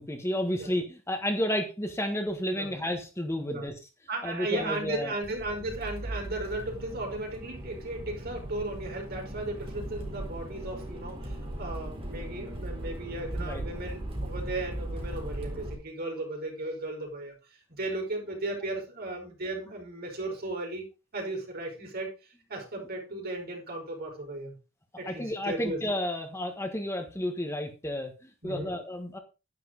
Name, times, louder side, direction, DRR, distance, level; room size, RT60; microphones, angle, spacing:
voice 1, 0.0-3.7 4.2-5.1 13.4-13.6 25.0-29.2, left 1 dB, 15° left, 4 dB, 1.4 m, -31 dB
voice 2, 4.1-17.3 17.7-20.8 21.1-24.6 25.0-25.8 28.4-28.8, right 2 dB, 50° right, 1 dB, 5.5 m, -36 dB
Accelerating revving vroom, 5.2-15.7, right 1 dB, 25° right, 4.2 m, -38 dB
11.0 x 10.5 x 4.0 m, 0.30 s
head